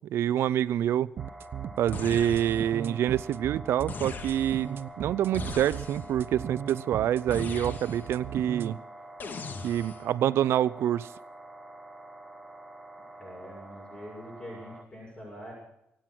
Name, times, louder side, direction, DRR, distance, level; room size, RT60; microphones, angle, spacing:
voice 1, 0.1-1.1 1.8-8.8 9.6-11.1, right 11 dB, 85° right, 18 dB, 0.5 m, -27 dB
sound 1, 1.2-14.8, right 1 dB, 10° right, 2.1 m, -47 dB
sound 2, 1.2-8.7, right 9 dB, 65° right, 0.8 m, -37 dB
sound 3, 1.9-2.8 3.9-4.7 5.3-6.2 7.3-8.2 9.2-10.1, left 5 dB, 50° left, 2.0 m, -40 dB
voice 2, 13.2-15.5, equal, 20° left, -4 dB, 7.2 m, -44 dB
25.0 x 9.2 x 6.1 m, 0.80 s
cardioid pair, 130°, 4 cm